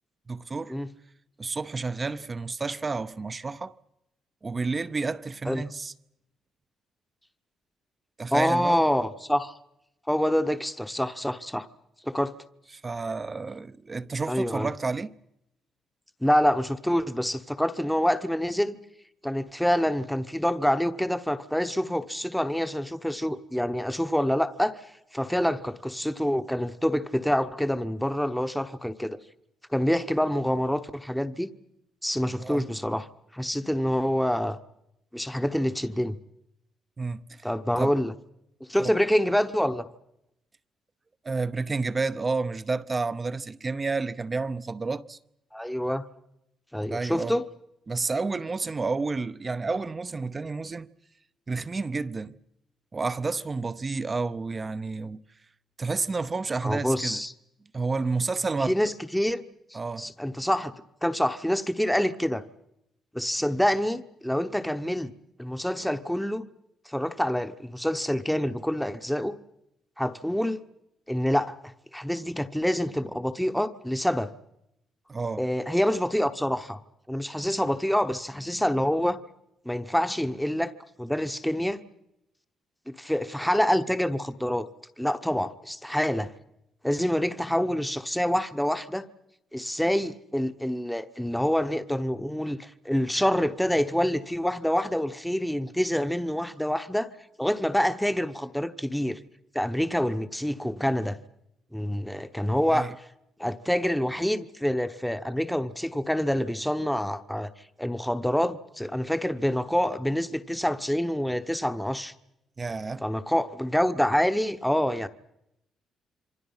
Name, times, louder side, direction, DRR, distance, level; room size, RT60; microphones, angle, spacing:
voice 1, 0.3-0.7 1.4-3.7 4.4-5.9 8.2-8.8 12.8-15.1 32.4-32.7 37.0-37.5 37.8-37.9 38.8-38.9 41.2-45.2 46.9-47.4 47.9-50.9 51.5-52.4 52.9-55.2 55.8-57.2 57.7-58.8 59.7-60.1 75.1-75.4 102.6-102.9 112.6-113.0, right 4 dB, 30° right, 0.8 m, -30 dB
voice 2, 8.3-9.6 10.1-11.7 12.1-12.3 14.3-14.7 16.2-18.8 19.2-24.7 25.1-29.2 29.7-31.5 32.0-33.1 33.3-34.6 35.1-36.2 37.4-38.1 38.7-39.9 45.5-46.0 46.7-47.4 56.6-57.3 58.7-59.4 59.7-60.7 61.0-62.4 63.1-65.1 65.4-66.4 66.9-69.4 70.0-70.6 71.1-71.6 71.9-74.3 75.4-76.8 77.1-79.2 79.6-80.7 81.0-81.8 82.9-84.7 85.0-86.3 86.8-89.0 89.5-97.1 97.4-99.2 99.5-101.2 101.7-102.9 103.4-107.5 107.8-112.1 113.0-115.1, equal, 5° left, 1.1 m, -26 dB
27.5 x 24.0 x 5.7 m
cardioid pair, 90°, 0 cm